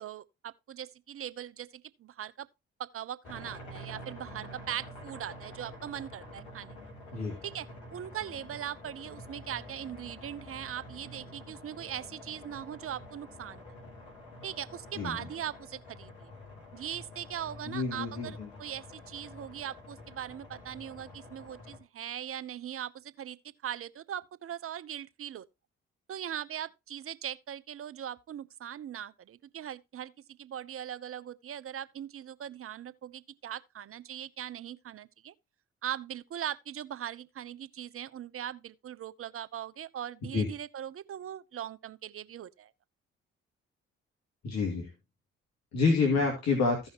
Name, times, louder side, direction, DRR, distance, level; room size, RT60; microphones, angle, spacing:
voice 1, 0.0-2.5 2.8-6.7 7.4-13.6 14.4-16.3 16.7-23.4 23.6-25.4 26.1-30.1 30.4-35.3 35.8-42.7, right 10 dB, 45° right, 0.7 m, -40 dB
sound 1, 3.2-21.8, left 1 dB, 75° left, 3.1 m, -48 dB
voice 2, 17.7-18.5 40.3-40.5 44.4-44.9 45.7-46.8, left 4 dB, 60° left, 2.3 m, -28 dB
15.5 x 5.6 x 3.0 m
hypercardioid pair, 45°, 31 cm